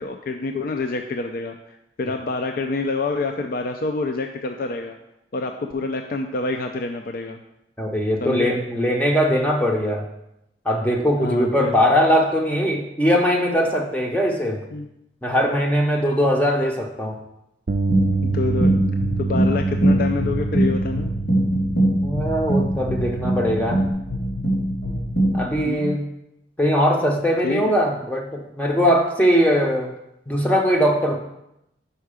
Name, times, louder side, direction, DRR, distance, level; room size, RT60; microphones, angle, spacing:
voice 1, 0.0-5.0 5.3-7.4 8.2-8.5 11.2-11.7 14.7-14.9 18.2-18.8 19.2-21.1 25.6-26.0 27.4-27.6, left 3 dB, 55° left, 5 dB, 0.4 m, -27 dB
voice 2, 7.8-10.1 10.7-14.6 15.2-17.2 22.0-23.8 25.3-26.1 26.6-29.9 30.3-31.2, equal, 10° left, 0 dB, 0.6 m, -20 dB
Bass guitar, 17.7-23.9, right 4 dB, 45° right, 0.4 m, -27 dB
sound 1, 17.9-25.6, right 1 dB, 80° left, 2.0 m, -22 dB
5.6 x 4.6 x 4.9 m, 0.84 s
head